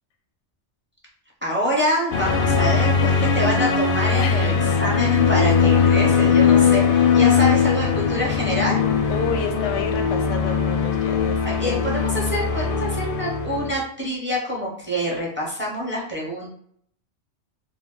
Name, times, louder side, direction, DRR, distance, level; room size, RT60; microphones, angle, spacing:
voice 1, 1.4-4.5 4.8-8.8 11.4-16.5, equal, 10° right, -4 dB, 0.8 m, -26 dB
sound 1, 2.1-13.7, left 6 dB, 60° left, 0.7 m, -20 dB
voice 2, 4.2-4.9 7.2-7.4 9.1-11.8, left 5 dB, 85° left, 4 dB, 0.9 m, -30 dB
2.8 x 2.2 x 3.8 m, 0.64 s
omnidirectional pair, 1.2 m